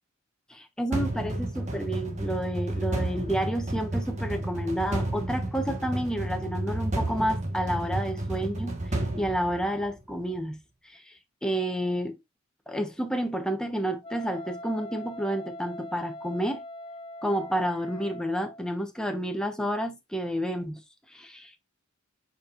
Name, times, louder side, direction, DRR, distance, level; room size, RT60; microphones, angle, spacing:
voice 1, 0.5-8.8 9.2-10.6 10.8-11.1 11.4-12.2 12.7-16.6 17.2-20.8 21.1-21.6, equal, 5° left, 1.0 m, -30 dB
sound 1, 0.9-10.1, right 1 dB, 35° right, 1.4 m, -31 dB
Wind instrument woodwind instrument, 14.0-18.7, left 1 dB, 25° left, 0.5 m, -42 dB
8.3 x 4.5 x 2.5 m
head